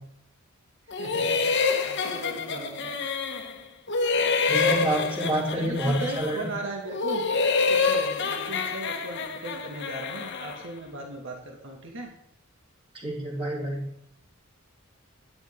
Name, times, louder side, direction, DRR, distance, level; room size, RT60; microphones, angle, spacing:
sound 1, 0.9-3.6 3.9-6.5 6.9-10.6, left 4 dB, 55° left, 1.3 m, -27 dB
voice 1, 0.9-3.0 5.5-7.3 7.7-12.1, right 2 dB, 60° right, 1 dB, 2.3 m, -38 dB
voice 2, 4.5-6.4 12.9-13.8, right 1 dB, 25° right, -4 dB, 3.6 m, -27 dB
12.5 x 10.5 x 3.8 m, 0.74 s
head